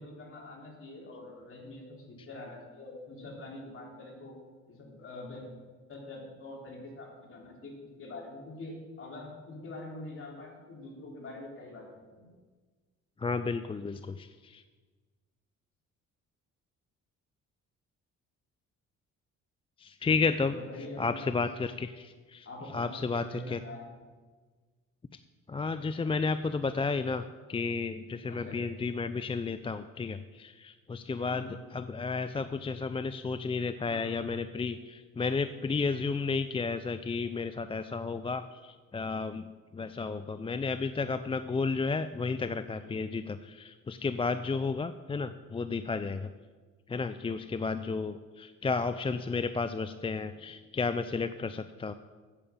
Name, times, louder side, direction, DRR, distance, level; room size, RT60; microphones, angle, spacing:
voice 1, 0.0-4.4 4.7-5.5 5.9-12.3 20.4-21.5 22.4-24.0 28.3-28.6 31.3-31.6 33.8-34.2 42.8-43.0 47.6-47.8 50.3-50.5, left 2 dB, 45° left, -1 dB, 3.5 m, -45 dB
voice 2, 13.2-14.6 19.8-20.5 21.0-22.5 22.7-23.6 25.5-27.2 27.5-31.5 31.7-39.5 39.7-46.3 46.9-51.9, left 4 dB, 20° left, 11 dB, 0.4 m, -32 dB
9.0 x 8.6 x 7.2 m, 1.4 s
cardioid pair, 90°, 30 cm